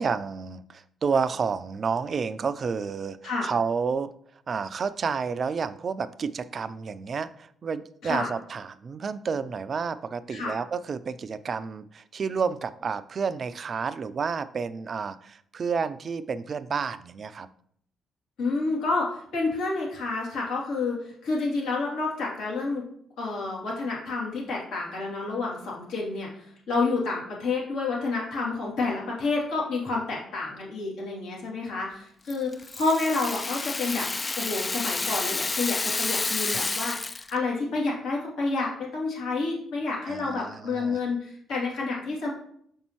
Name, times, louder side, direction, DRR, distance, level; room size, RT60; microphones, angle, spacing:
voice 1, 0.0-3.2 3.4-4.1 4.5-17.5 36.5-36.6 40.0-41.0, right 5 dB, 50° right, 14 dB, 0.4 m, -30 dB
voice 2, 18.4-22.9 23.2-34.1 34.4-37.0 37.3-42.3, left 3 dB, 75° left, -5 dB, 2.7 m, -29 dB
Rattle (instrument), 32.3-37.4, left 3 dB, 30° left, 0.4 m, -30 dB
6.5 x 5.4 x 3.0 m, 0.66 s
hypercardioid pair, 50°, 0 cm